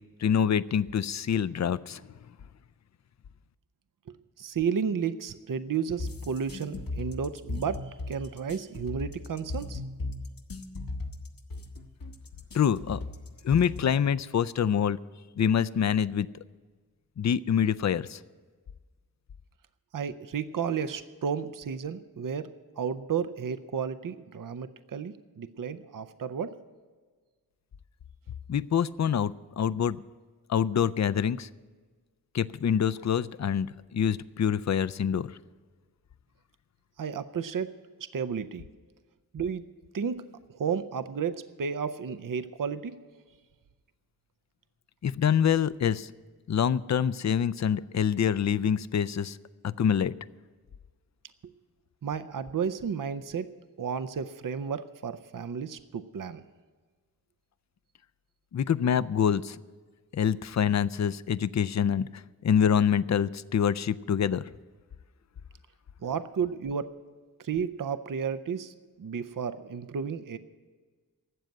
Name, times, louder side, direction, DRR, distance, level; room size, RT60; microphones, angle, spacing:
voice 1, 0.2-2.0 12.5-13.0 13.4-15.0 15.4-16.3 17.2-18.2 28.5-30.0 30.5-31.5 32.3-35.4 45.0-46.1 46.5-49.4 49.6-50.1 58.5-59.6 60.1-64.5, left 8 dB, 50° left, 18 dB, 0.5 m, -26 dB
voice 2, 4.1-9.8 19.9-26.6 37.0-38.7 39.3-39.6 39.9-43.0 52.0-53.5 53.8-56.4 66.0-66.9 67.4-70.4, right 6 dB, 60° right, 12 dB, 0.6 m, -33 dB
sound 1, 6.0-14.0, left 2 dB, 65° left, 1.1 m, -37 dB
12.5 x 7.7 x 9.3 m, 1.4 s
cardioid pair, 40°, 37 cm